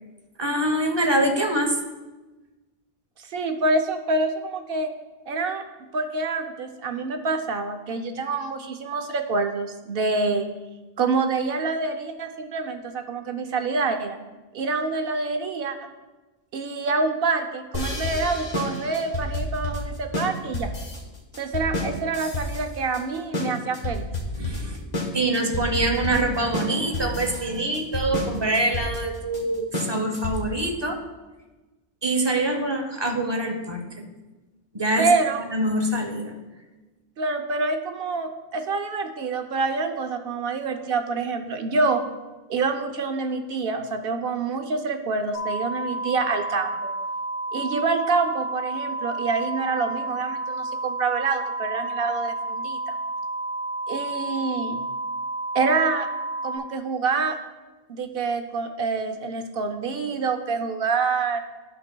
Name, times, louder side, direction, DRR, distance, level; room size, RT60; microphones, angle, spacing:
voice 1, 0.4-1.8 24.2-24.8 25.1-31.0 32.0-34.1 34.7-35.1 35.5-36.3, right 1 dB, 30° right, 4 dB, 0.7 m, -25 dB
voice 2, 3.3-4.9 5.3-5.6 5.9-10.5 11.0-14.2 14.5-15.8 16.5-20.7 21.4-24.1 35.0-35.4 37.2-42.0 42.5-46.9 47.5-52.9 53.9-54.8 55.5-56.1 56.4-57.4 57.9-61.4, right 4 dB, 65° right, 6 dB, 0.8 m, -26 dB
sound 1, 17.7-30.6, left 1 dB, 40° left, 1.1 m, -30 dB
sound 2, 45.3-56.6, right 2 dB, 65° left, 0.9 m, -31 dB
12.0 x 5.7 x 2.2 m, 1.2 s
omnidirectional pair, 1.1 m